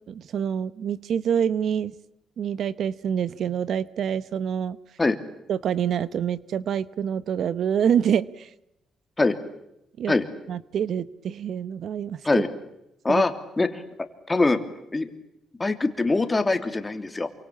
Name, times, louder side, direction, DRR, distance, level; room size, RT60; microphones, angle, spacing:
voice 1, 0.1-1.9 2.4-4.8 5.5-8.5 10.0-10.1 10.5-12.4 13.1-13.2, right 8 dB, 65° right, 17 dB, 1.0 m, -26 dB
voice 2, 14.3-14.6 14.9-15.1 15.6-17.3, left 3 dB, 20° left, 8 dB, 3.1 m, -22 dB
28.0 x 24.5 x 8.7 m, 0.85 s
cardioid pair, 90°, 0 cm